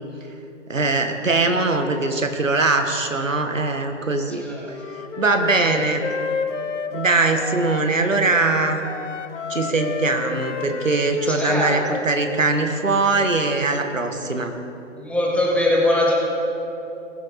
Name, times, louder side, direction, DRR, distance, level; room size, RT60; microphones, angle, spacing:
voice 1, 0.7-4.4 5.2-6.0 6.9-8.8 9.5-14.5, right 3 dB, 85° right, 6 dB, 1.4 m, -21 dB
Wind instrument woodwind instrument, 4.6-8.1 8.4-11.9, left 5 dB, 70° left, 1.1 m, -31 dB
voice 2, 11.3-12.0 14.3-14.4 15.0-16.1, left 1 dB, 5° left, -4 dB, 2.2 m, -22 dB
20.5 x 8.1 x 4.2 m, 2.9 s
figure-of-eight pair, 125°, 38 cm